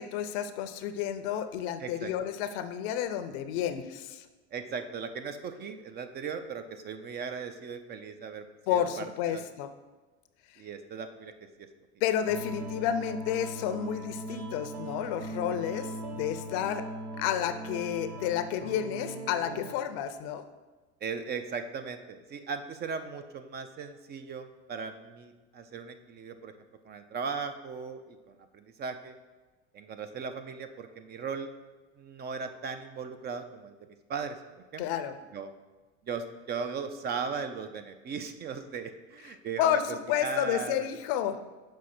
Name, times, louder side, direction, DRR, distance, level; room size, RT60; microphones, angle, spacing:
voice 1, 0.0-4.2 8.7-9.7 12.0-16.8 17.2-20.4 34.8-35.1 39.6-41.4, left 10 dB, 60° left, 10 dB, 0.6 m, -31 dB
voice 2, 1.8-2.1 4.5-8.4 8.7-9.4 10.6-11.3 15.5-15.6 21.0-26.5 26.9-28.2 28.5-29.2 29.7-31.5 32.0-33.7 34.1-34.4 34.7-34.9 35.3-35.5 36.1-39.8 40.2-41.0, right 5 dB, 30° right, 8 dB, 0.5 m, -37 dB
sound 1, 12.2-19.7, right 1 dB, 90° right, 1.3 m, -39 dB
6.3 x 4.6 x 4.3 m, 1.3 s
supercardioid pair, 105°, 32 cm